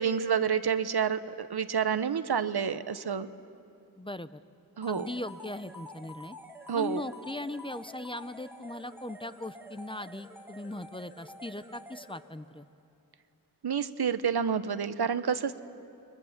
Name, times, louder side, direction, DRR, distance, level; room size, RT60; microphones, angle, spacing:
voice 1, 0.0-3.3 4.8-5.1 6.7-7.0 13.6-15.6, right 7 dB, 90° right, 12 dB, 0.9 m, -29 dB
voice 2, 4.0-4.4 4.9-6.4 6.7-12.7, left 1 dB, 15° left, 13 dB, 0.6 m, -39 dB
sound 1, 4.8-12.6, equal, 5° right, 2.1 m, -48 dB
29.0 x 22.0 x 7.3 m, 2.6 s
wide cardioid pair, 70°, 38 cm